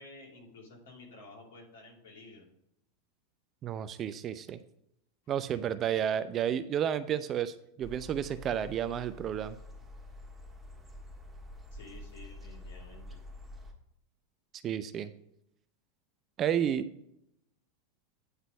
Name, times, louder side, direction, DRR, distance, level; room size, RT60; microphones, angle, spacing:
voice 1, 0.0-2.5 11.7-13.2, left 2 dB, 70° left, -1 dB, 2.8 m, -52 dB
voice 2, 3.6-4.6 5.3-9.6 14.6-15.1 16.4-16.9, right 9 dB, 35° right, 12 dB, 0.6 m, -31 dB
sound 1, 7.8-13.7, left 1 dB, 10° right, 1.7 m, -47 dB
9.6 x 4.1 x 5.3 m, 0.76 s
hypercardioid pair, 95°, 0 cm